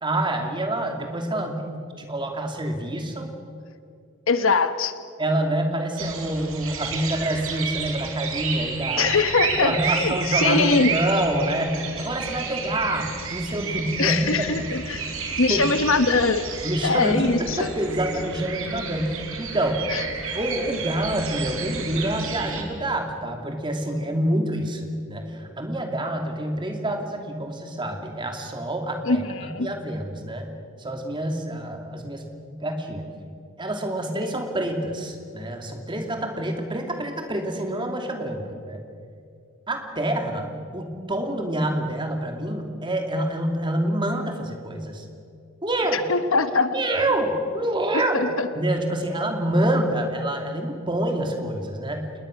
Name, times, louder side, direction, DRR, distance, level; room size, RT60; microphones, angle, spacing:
voice 1, 0.0-3.3 5.2-9.1 9.6-14.6 15.2-15.7 16.6-19.9 20.3-29.2 29.6-30.5 30.8-33.0 33.6-38.8 39.7-40.5 40.7-45.0 45.6-46.0 46.7-48.3 48.5-52.1, right 1 dB, 20° right, 4 dB, 2.6 m, -27 dB
voice 2, 4.3-4.9 9.0-10.9 14.0-15.0 15.4-16.5 16.8-17.7 19.9-20.0 29.0-29.7 45.9-46.7 48.1-48.5, left 4 dB, 60° left, 10 dB, 1.1 m, -22 dB
sound 1, 6.0-22.6, right 5 dB, 65° right, 4.0 m, -31 dB
28.5 x 20.5 x 6.5 m, 2.3 s
head